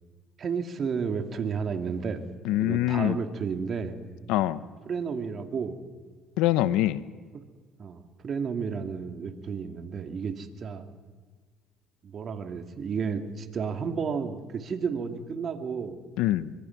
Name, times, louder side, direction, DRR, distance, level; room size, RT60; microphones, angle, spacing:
voice 1, 0.4-2.2 2.6-4.0 4.8-5.8 7.3-7.4 7.8-10.9 12.0-16.0, right 6 dB, 50° right, 7 dB, 2.5 m, -32 dB
voice 2, 2.4-3.2 4.3-4.6 6.4-7.0 16.2-16.5, left 14 dB, 75° left, 16 dB, 0.9 m, -24 dB
24.5 x 23.0 x 6.0 m, 1.5 s
supercardioid pair, 70°, 0 cm